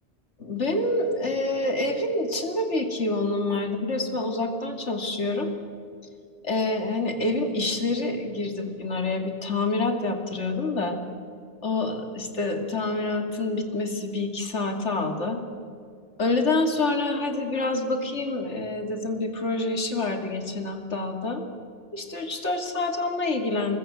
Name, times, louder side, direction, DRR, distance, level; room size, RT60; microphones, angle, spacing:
voice 1, 0.4-5.5 6.4-11.0 11.6-15.4 16.2-21.5 21.9-23.8, left 2 dB, 80° left, 5 dB, 2.9 m, -27 dB
26.5 x 20.5 x 8.9 m, 2.4 s
omnidirectional pair, 1.2 m